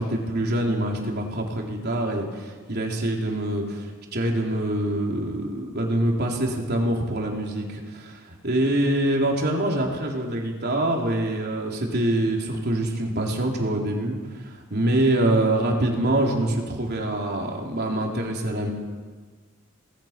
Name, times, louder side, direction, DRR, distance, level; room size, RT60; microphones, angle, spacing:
voice 1, 0.0-18.7, right 1 dB, 50° right, 0 dB, 4.0 m, -25 dB
27.5 x 19.5 x 6.1 m, 1.5 s
head